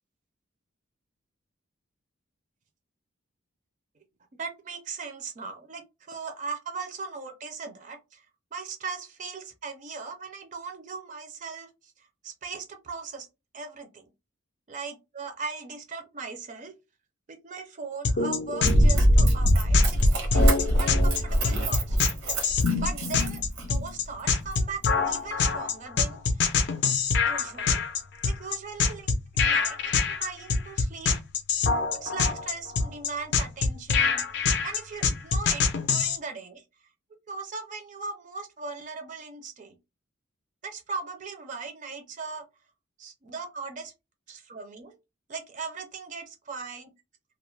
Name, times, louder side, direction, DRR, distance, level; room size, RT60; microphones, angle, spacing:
voice 1, 4.4-8.2 8.5-13.3 13.5-14.1 14.7-16.7 17.3-20.4 20.8-22.0 22.5-26.5 27.2-27.8 28.3-29.1 29.4-29.9 30.2-31.2 31.9-34.2 34.6-36.6 37.3-39.8 40.6-42.5 43.0-43.9 44.3-45.0 45.3-46.9, right 4 dB, 35° right, 0.4 m, -39 dB
sound 1, 18.0-36.2, left 5 dB, 55° left, 0.4 m, -25 dB
Run, 18.6-23.9 24.5-24.6, equal, 90° right, 0.8 m, -22 dB
2.3 x 2.0 x 3.0 m
head